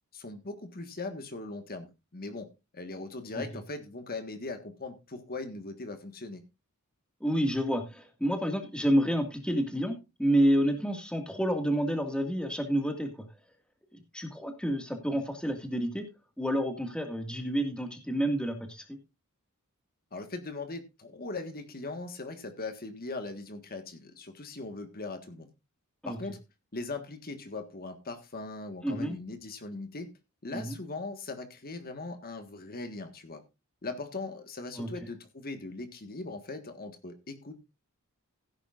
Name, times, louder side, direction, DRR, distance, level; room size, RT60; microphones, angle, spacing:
voice 1, 0.1-6.4 20.1-25.5 26.0-26.4 26.7-30.1 30.4-33.4 33.8-37.6, left 3 dB, 45° left, 8 dB, 1.6 m, -40 dB
voice 2, 7.2-13.1 13.9-16.1 16.4-19.0 26.0-26.2 28.8-29.2 30.5-30.8 34.8-34.9, equal, 5° left, 5 dB, 2.0 m, -29 dB
16.0 x 10.0 x 2.5 m, 0.26 s
head